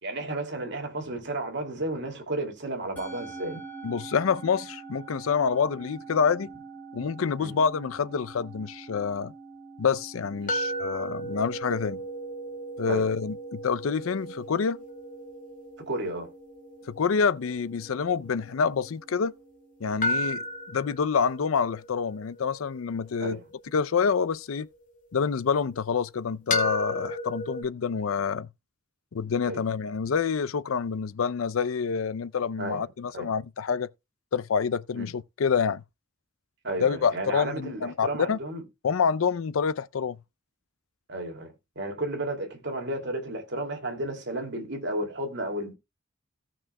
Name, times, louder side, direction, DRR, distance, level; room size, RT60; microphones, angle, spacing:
voice 1, 0.0-3.6 7.4-7.6 10.4-10.6 12.9-13.1 15.9-16.3 20.3-20.4 23.2-23.4 29.4-29.6 32.6-32.8 33.1-33.3 35.0-35.1 36.6-38.6 41.1-45.7, right 1 dB, 60° right, 2.5 m, -33 dB
Musical instrument, 3.0-21.5, right 4 dB, 10° left, 6.1 m, -47 dB
voice 2, 3.8-6.5 6.9-9.3 9.8-12.0 12.8-14.8 16.9-19.3 19.8-20.4 20.7-23.4 23.7-24.7 25.1-28.5 29.1-33.9 34.3-35.8 36.8-38.4 38.8-40.2, left 6 dB, 85° left, 0.5 m, -27 dB
sound 1, 10.5-19.4 20.0-25.1 26.5-27.6, left 1 dB, 40° left, 2.0 m, -35 dB
17.0 x 6.2 x 2.2 m
head